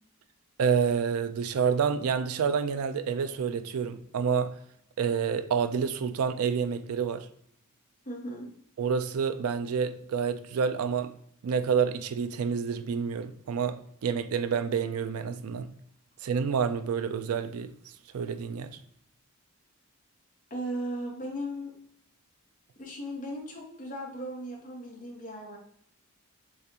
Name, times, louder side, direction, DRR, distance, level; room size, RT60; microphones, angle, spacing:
voice 1, 0.6-4.5 5.0-7.3 8.8-11.1 11.4-15.7 16.2-17.7 18.1-18.8, right 6 dB, 80° right, 0.4 m, -28 dB
voice 2, 8.0-8.5 20.5-21.7 22.8-25.6, equal, 35° left, 1.3 m, -37 dB
6.9 x 2.4 x 2.8 m
head